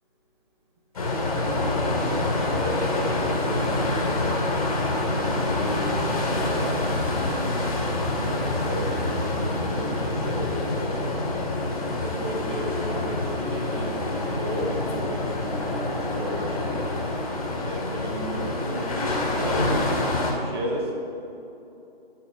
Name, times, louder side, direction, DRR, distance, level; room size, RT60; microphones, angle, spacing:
sound 1, 0.9-20.3, left 2 dB, 35° left, 1.5 m, -26 dB
voice 1, 2.2-4.4 4.8-6.1 6.4-7.6 8.2-11.3 12.0-16.9 17.6-19.7 20.4-20.9, equal, 25° right, -1 dB, 1.0 m, -34 dB
12.0 x 4.2 x 4.8 m, 2.8 s
figure-of-eight pair, 160°, 31 cm